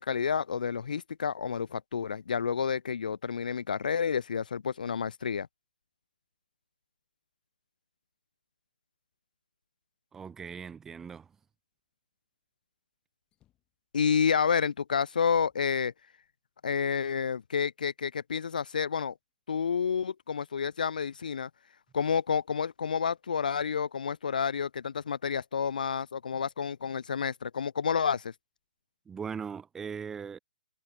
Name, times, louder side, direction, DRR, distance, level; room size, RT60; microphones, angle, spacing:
voice 1, 0.0-5.5 13.9-15.9 16.6-19.1 19.5-21.5 21.9-28.3, left 6 dB, 65° left, 0.5 m, -29 dB
voice 2, 10.1-11.3 29.1-30.4, right 6 dB, 10° right, 0.5 m, -39 dB
sound 1, 13.2-13.8 14.5-14.6 15.0-16.4 17.1-17.2 18.0-19.0, left 13 dB, 20° left, 5.8 m, -72 dB
figure-of-eight pair, 140°, 5 cm